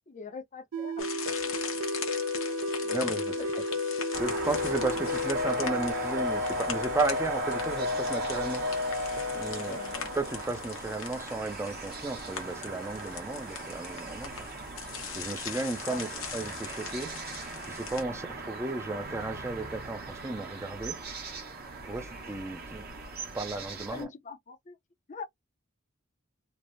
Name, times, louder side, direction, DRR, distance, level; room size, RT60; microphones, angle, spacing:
voice 1, 0.1-1.5 2.8-2.9 3.4-3.6 9.6-10.1 15.9-16.0 18.1-18.3 23.9-24.8 25.1-25.2, left 4 dB, 40° left, 0.5 m, -43 dB
sound 1, 0.7-11.1, left 2 dB, 65° right, 0.4 m, -32 dB
sound 2, 1.0-18.0, left 7 dB, 85° left, 0.9 m, -41 dB
voice 2, 2.9-3.4 4.2-8.6 9.3-9.8 10.1-14.5 15.2-16.1 16.3-17.1 17.7-21.0 21.9-22.9 23.2-24.1, right 2 dB, 15° right, 0.5 m, -34 dB
sound 3, 4.1-24.0, right 3 dB, 50° right, 1.0 m, -40 dB
3.2 x 2.1 x 2.6 m
head